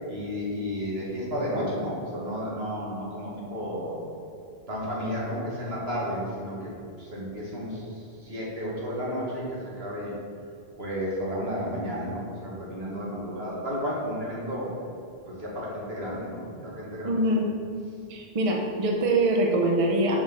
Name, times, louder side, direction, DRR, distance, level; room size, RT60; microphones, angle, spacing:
voice 1, 0.1-4.0 4.7-6.7 7.0-10.1 10.8-14.8 15.3-17.2, equal, 75° right, -5 dB, 2.0 m, -32 dB
voice 2, 17.0-17.5 18.1-20.2, right 1 dB, 35° right, 0 dB, 0.8 m, -24 dB
6.0 x 4.7 x 6.1 m, 2.5 s
omnidirectional pair, 1.1 m